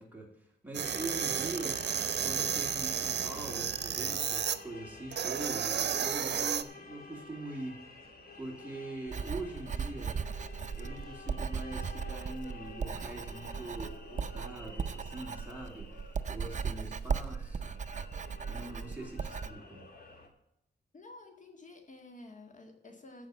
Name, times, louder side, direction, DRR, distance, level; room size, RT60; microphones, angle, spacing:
voice 1, 0.0-1.8 2.2-8.1 8.4-10.2 10.8-15.9 16.3-17.8 18.5-19.9, right 2 dB, 10° right, -1 dB, 3.0 m, -43 dB
sound 1, 0.7-4.6 5.1-6.6, right 8 dB, 75° right, 0.8 m, -32 dB
sound 2, 0.8-20.3, left 3 dB, 60° left, 2.4 m, -50 dB
Writing, 9.1-19.5, right 6 dB, 45° right, 0.5 m, -37 dB
voice 2, 20.9-23.3, left 2 dB, 45° left, 3 dB, 1.8 m, -51 dB
14.5 x 4.9 x 7.8 m, 0.79 s
wide cardioid pair, 125°, 18 cm